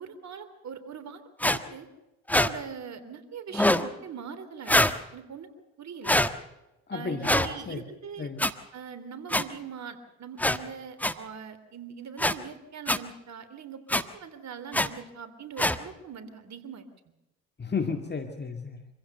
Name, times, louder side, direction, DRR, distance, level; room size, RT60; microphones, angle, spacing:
voice 1, 0.0-1.9 2.3-4.8 5.1-5.5 5.8-6.1 6.9-8.3 8.7-16.9, right 7 dB, 55° right, 11 dB, 3.4 m, -42 dB
sound 1, 1.4-1.6 2.3-2.5 3.5-3.9 4.7-5.0 6.0-6.3 7.2-7.5 8.4-8.5 9.3-9.4 10.4-10.6 11.0-11.1 12.2-12.3 12.9-13.0 13.9-14.0 14.7-14.9 15.6-15.8, left 1 dB, 5° left, 1.4 m, -23 dB
voice 2, 6.9-7.8 8.2-8.5 17.6-18.8, left 5 dB, 30° left, 6 dB, 2.1 m, -33 dB
26.0 x 16.0 x 6.7 m, 0.96 s
supercardioid pair, 65°, 34 cm